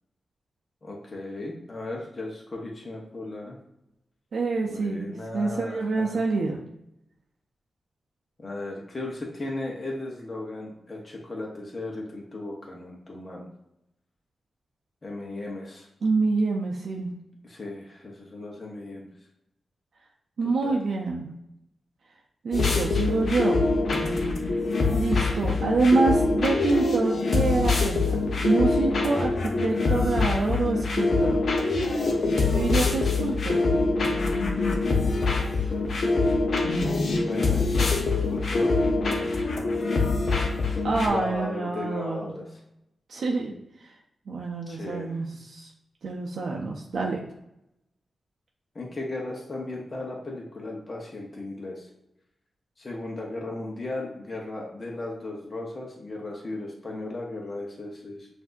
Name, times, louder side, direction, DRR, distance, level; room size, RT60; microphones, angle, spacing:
voice 1, 0.8-3.6 4.7-6.2 8.4-13.5 15.0-15.9 17.4-19.1 20.6-20.8 23.0-23.2 37.2-38.8 41.0-42.6 44.7-45.2 48.7-51.9 52.8-58.3, left 2 dB, 40° left, -2 dB, 0.9 m, -36 dB
voice 2, 4.3-6.6 16.0-17.1 20.4-21.3 22.4-23.6 24.9-29.3 29.6-31.4 32.5-33.7 40.8-42.3 43.1-43.5 44.3-45.7 46.0-47.2, right 3 dB, 75° right, -1 dB, 0.5 m, -26 dB
sound 1, 22.5-41.1, left 3 dB, 65° left, 0.7 m, -24 dB
5.8 x 2.6 x 2.6 m, 0.84 s
cardioid pair, 80°, 0 cm